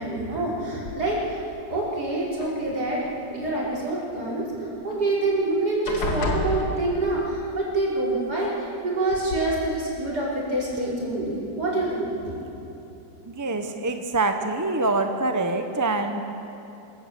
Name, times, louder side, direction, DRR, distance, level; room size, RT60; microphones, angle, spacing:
voice 1, 0.0-1.4 1.7-3.0 3.3-12.4, right 2 dB, 60° right, -6 dB, 5.6 m, -26 dB
sound 1, 0.9-1.4 2.3-3.1 4.9-5.0 5.3-5.5 5.9-7.3 8.4-8.5 9.1-9.4, left 1 dB, 80° left, 3.1 m, -30 dB
voice 2, 13.2-16.2, right 2 dB, 15° right, 6 dB, 0.7 m, -25 dB
24.0 x 15.0 x 8.4 m, 2.9 s
omnidirectional pair, 2.0 m